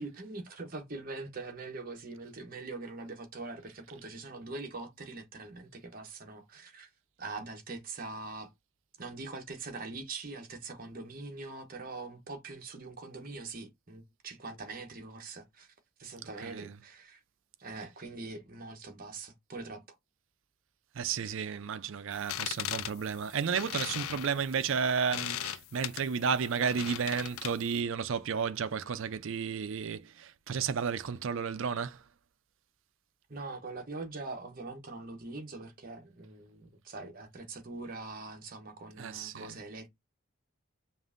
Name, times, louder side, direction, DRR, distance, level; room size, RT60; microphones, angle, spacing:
voice 1, 0.0-6.9 7.2-8.5 9.0-15.7 16.0-17.2 17.6-20.0 33.3-39.9, right 3 dB, 40° right, 0.9 m, -43 dB
voice 2, 16.4-16.7 20.9-32.0 39.0-39.6, right 6 dB, 60° right, 0.4 m, -32 dB
sound 1, 22.1-27.8, left 12 dB, 75° left, 0.3 m, -38 dB
5.3 x 2.5 x 2.5 m
head